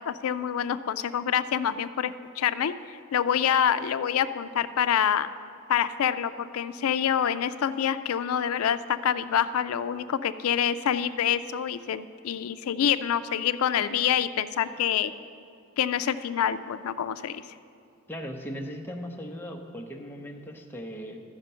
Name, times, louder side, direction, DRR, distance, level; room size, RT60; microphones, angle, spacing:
voice 1, 0.1-5.3 5.7-15.1 15.8-17.4, left 9 dB, 80° left, 13 dB, 0.4 m, -26 dB
voice 2, 18.1-21.2, equal, 10° left, 2 dB, 0.7 m, -38 dB
14.0 x 5.1 x 5.5 m, 2.4 s
head